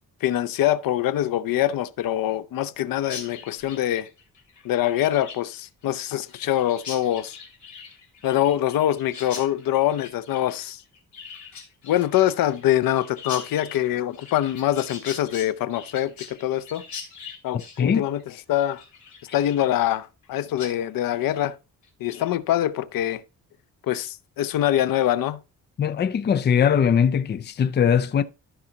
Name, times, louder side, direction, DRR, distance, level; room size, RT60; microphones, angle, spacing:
voice 1, 0.2-4.1 4.6-7.4 8.2-10.8 11.8-16.8 17.4-18.2 18.5-18.8 19.3-21.6 22.0-23.2 23.8-25.4, left 12 dB, 85° left, 0.7 m, -24 dB
Chirp tweet, 3.0-20.3 20.6-20.7 21.1-21.5 21.8-22.3, left 6 dB, 60° left, 3.0 m, -42 dB
voice 2, 25.8-28.2, left 7 dB, 30° left, 0.5 m, -20 dB
13.5 x 5.5 x 2.8 m
cardioid pair, 145°, 33 cm